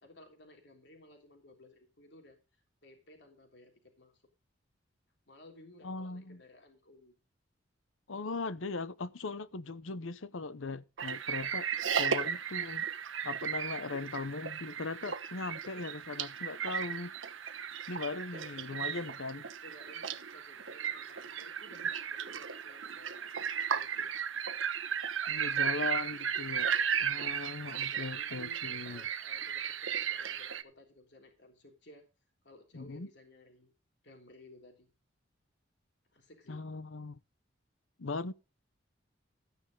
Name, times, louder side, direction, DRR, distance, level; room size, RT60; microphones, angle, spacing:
voice 1, 0.0-2.4 2.8-4.2 5.3-7.2 15.7-15.9 18.7-19.1 19.6-24.1 25.3-25.8 26.5-26.9 27.2-27.4 27.9-32.1 32.4-33.7 34.0-34.9 36.1-36.6, left 1 dB, 60° left, 3.3 m, -57 dB
voice 2, 5.8-6.4 8.1-12.8 13.2-17.1 17.5-19.4 25.3-26.7 27.0-29.0 32.7-33.1 36.5-37.2 38.0-38.3, left 3 dB, 85° left, 0.9 m, -39 dB
sound 1, 11.0-30.6, right 8 dB, 85° right, 1.1 m, -35 dB
14.0 x 9.8 x 3.8 m
head